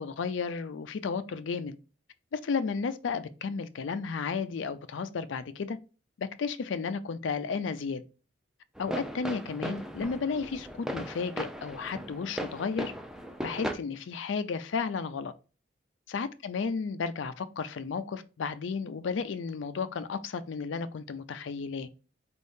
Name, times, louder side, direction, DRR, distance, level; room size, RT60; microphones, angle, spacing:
voice 1, 0.0-1.8 2.3-5.8 6.2-8.0 8.8-12.9 13.4-15.3 16.1-21.9, left 5 dB, 85° left, 0.4 m, -33 dB
sound 1, 8.7-13.7, equal, 5° right, 0.5 m, -37 dB
4.5 x 3.5 x 2.6 m
head